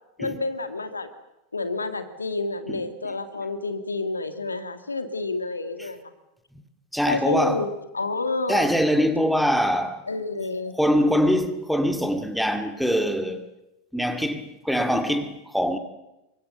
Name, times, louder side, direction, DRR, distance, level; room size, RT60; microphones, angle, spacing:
voice 1, 0.2-1.1 1.5-6.0 7.1-8.7 10.1-10.7, left 3 dB, 75° left, 2.0 m, -29 dB
voice 2, 6.9-7.7 8.5-10.0 10.8-13.5 13.9-15.8, equal, ahead, 2.2 m, -23 dB
26.0 x 23.5 x 6.8 m
figure-of-eight pair, 90°, 0 cm